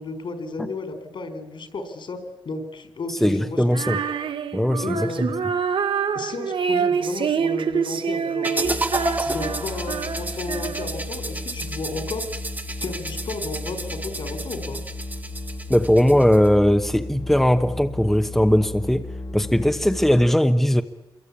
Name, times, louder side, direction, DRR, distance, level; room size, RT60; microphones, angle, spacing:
voice 1, 0.0-2.2 2.4-3.6 4.8-5.5 6.1-8.8 9.3-12.2 12.8-14.8, left 3 dB, 70° left, 4.5 m, -33 dB
voice 2, 3.2-4.0 4.5-5.3 15.7-19.1 19.3-20.8, equal, 5° left, 1.0 m, -19 dB
Female singing, 3.7-11.1, right 6 dB, 80° right, 1.2 m, -26 dB
sound 1, 8.4-16.5, right 2 dB, 20° right, 1.1 m, -31 dB
sound 2, 8.6-20.3, left 2 dB, 50° left, 2.0 m, -35 dB
27.0 x 23.0 x 8.6 m
wide cardioid pair, 100°, 9 cm